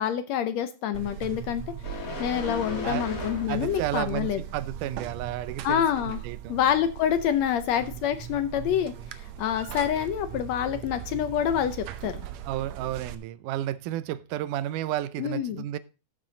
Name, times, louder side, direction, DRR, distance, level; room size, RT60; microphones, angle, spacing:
voice 1, 0.0-1.6 1.9-4.4 5.6-6.2 6.5-8.9 9.4-12.3 15.2-15.6, left 9 dB, 70° left, 1.8 m, -27 dB
Buzz, 0.9-13.2, right 11 dB, 70° right, 1.7 m, -39 dB
sound 1, 1.8-3.9 4.3-4.5, left 3 dB, 35° left, 1.6 m, -36 dB
voice 2, 3.5-5.9 6.2-6.6 12.5-15.8, right 12 dB, 90° right, 2.2 m, -32 dB
13.0 x 6.6 x 3.9 m
omnidirectional pair, 3.5 m